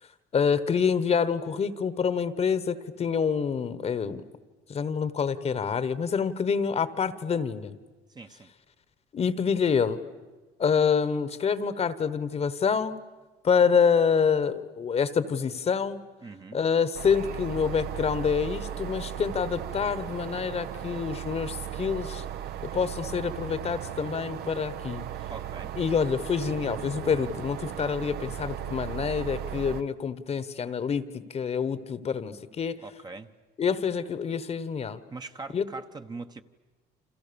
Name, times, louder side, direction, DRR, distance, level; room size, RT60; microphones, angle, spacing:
voice 1, 0.3-4.2 4.7-7.8 9.1-10.0 10.6-13.0 13.4-16.0 16.5-22.2 22.7-25.0 25.8-32.8 33.6-35.0 35.5-35.6, left 6 dB, 40° left, 14 dB, 1.2 m, -27 dB
voice 2, 8.1-8.5 16.2-16.6 25.3-25.8 32.8-33.3 35.1-36.4, right 3 dB, 25° right, 7 dB, 1.0 m, -41 dB
sound 1, 16.9-29.8, right 11 dB, 70° right, 1.0 m, -36 dB
29.5 x 27.0 x 7.0 m, 1.3 s
cardioid pair, 110°, 17 cm